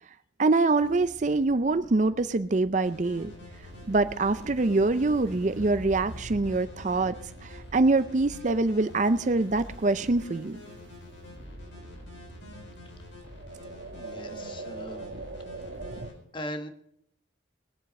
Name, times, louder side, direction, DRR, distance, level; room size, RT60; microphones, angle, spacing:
voice 1, 0.4-3.3 3.9-7.2 7.4-10.6, right 3 dB, 40° right, 12 dB, 0.5 m, -24 dB
sound 1, 0.8-16.1, right 2 dB, 80° right, 1.2 m, -45 dB
sound 2, 2.8-16.1, left 2 dB, 85° left, 4.7 m, -47 dB
voice 2, 13.9-15.1 16.0-16.7, left 1 dB, 25° left, 7 dB, 1.3 m, -39 dB
21.0 x 8.0 x 5.2 m, 0.71 s
head